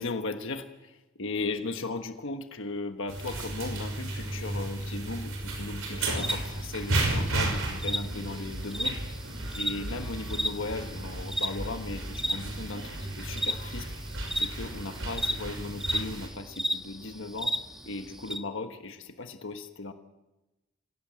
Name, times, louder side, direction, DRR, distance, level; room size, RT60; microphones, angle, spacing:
voice 1, 0.0-9.0 9.5-13.9 14.3-17.5 17.9-19.9, left 3 dB, 60° left, 6 dB, 1.4 m, -37 dB
sound 1, 3.1-16.3, right 2 dB, 70° right, 5.9 m, -34 dB
sound 2, 6.0-18.4, equal, ahead, 1.3 m, -35 dB
25.5 x 16.5 x 7.7 m, 1.0 s
head